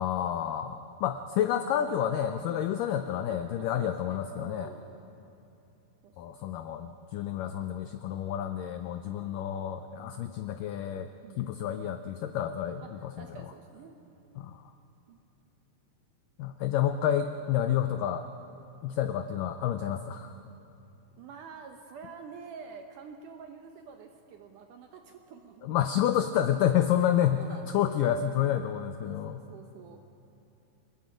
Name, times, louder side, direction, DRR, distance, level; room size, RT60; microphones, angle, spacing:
voice 1, 0.0-4.7 6.2-11.1 11.4-13.3 14.4-14.7 16.4-18.3 18.8-20.4 25.6-29.4, left 10 dB, 85° left, 9 dB, 1.9 m, -29 dB
voice 2, 3.3-4.9 6.0-6.2 9.0-9.5 11.2-11.5 12.8-12.9 13.1-14.4 15.1-15.2 21.2-25.8 27.0-28.1 29.0-30.0, right 6 dB, 75° right, 5 dB, 1.9 m, -48 dB
26.0 x 21.0 x 5.1 m, 2.8 s
omnidirectional pair, 4.6 m